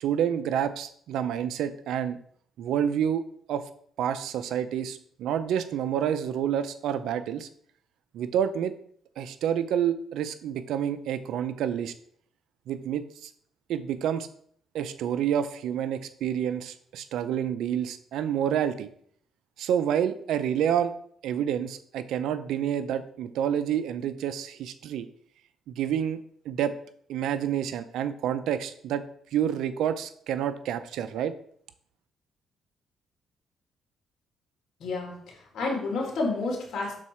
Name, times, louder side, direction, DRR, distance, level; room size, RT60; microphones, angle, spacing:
voice 1, 0.0-2.2 2.6-3.6 4.0-7.5 8.1-8.7 9.2-11.9 12.7-13.3 13.7-14.3 14.7-18.9 19.6-20.9 21.2-25.1 25.7-26.2 26.5-26.7 27.1-29.0 29.3-31.3, right 9 dB, 80° right, 12 dB, 0.5 m, -28 dB
voice 2, 34.8-36.9, left 3 dB, 70° left, 0 dB, 2.1 m, -30 dB
6.3 x 4.0 x 4.4 m, 0.62 s
cardioid pair, 90°, 0 cm